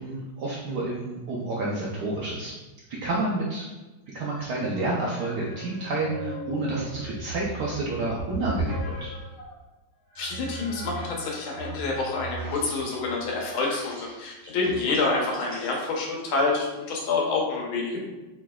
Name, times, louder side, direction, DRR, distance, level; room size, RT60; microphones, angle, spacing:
voice 1, 0.0-2.5 2.9-3.7 4.1-9.1, right 2 dB, 75° right, -4 dB, 0.9 m, -29 dB
sound 1, 4.6-9.6 10.1-16.8, right 1 dB, 10° right, 1.1 m, -38 dB
voice 2, 10.2-18.0, left 3 dB, 80° left, -2 dB, 1.6 m, -27 dB
4.7 x 3.2 x 2.2 m, 1.1 s
omnidirectional pair, 2.3 m